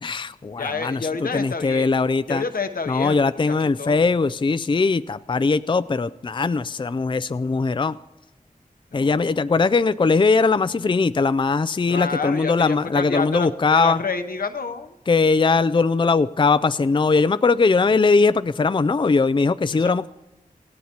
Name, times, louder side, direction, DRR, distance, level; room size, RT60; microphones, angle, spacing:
voice 1, 0.0-2.4 2.9-8.0 8.9-14.0 15.1-20.1, left 4 dB, 35° left, 12 dB, 0.4 m, -20 dB
voice 2, 0.6-1.9 2.3-4.1 8.9-9.4 11.8-15.0 19.7-19.9, left 4 dB, 80° left, 7 dB, 0.9 m, -29 dB
26.5 x 16.5 x 2.9 m, 0.99 s
cardioid pair, 45°, 15 cm